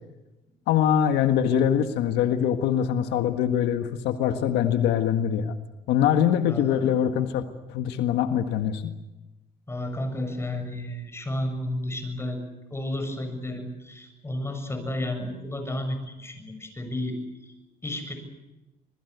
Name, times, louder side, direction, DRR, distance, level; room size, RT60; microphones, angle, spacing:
voice 1, 0.7-5.5 5.9-7.4 7.7-8.9, left 9 dB, 85° left, 7 dB, 1.7 m, -23 dB
voice 2, 6.5-7.0 9.7-12.4 12.7-17.5 17.8-18.1, left 1 dB, 15° left, 7 dB, 7.0 m, -32 dB
26.5 x 21.0 x 8.2 m, 1.0 s
cardioid pair, 110°, 17 cm